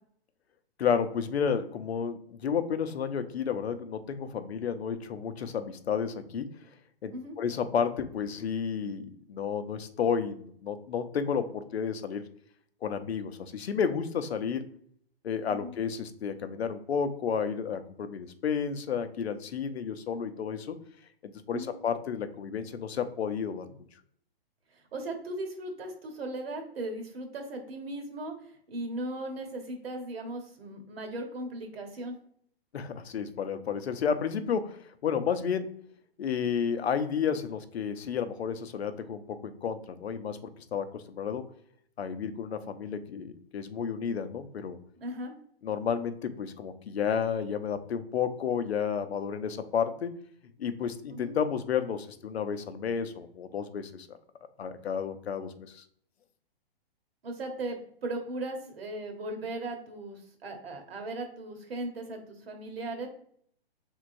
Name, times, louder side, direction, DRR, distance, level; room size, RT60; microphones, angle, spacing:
voice 1, 0.8-6.5 7.0-12.2 12.8-14.6 15.2-20.8 21.2-23.8 32.7-35.8 36.2-41.4 42.0-44.8 45.6-50.1 50.6-54.2 54.6-55.8, left 7 dB, 90° left, 10 dB, 0.7 m, -31 dB
voice 2, 24.7-32.2 45.0-45.3 51.1-51.3 57.2-63.1, right 2 dB, 70° right, 4 dB, 1.3 m, -37 dB
4.6 x 3.6 x 2.5 m, 0.63 s
hypercardioid pair, 155°, 31 cm